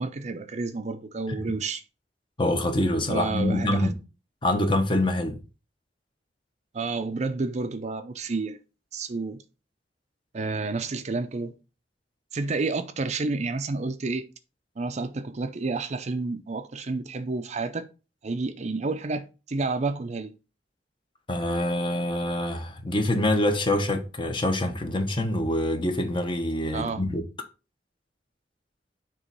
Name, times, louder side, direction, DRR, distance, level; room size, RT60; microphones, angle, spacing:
voice 1, 0.0-1.8 3.1-3.9 6.7-8.6 8.9-9.4 10.3-11.5 12.3-14.3 14.8-17.9 18.2-20.3 26.7-27.0, right 3 dB, 40° right, 0.5 m, -30 dB
voice 2, 2.4-3.9 4.4-5.4 21.3-27.2, left 1 dB, 30° left, 1.0 m, -25 dB
7.0 x 3.1 x 5.2 m
head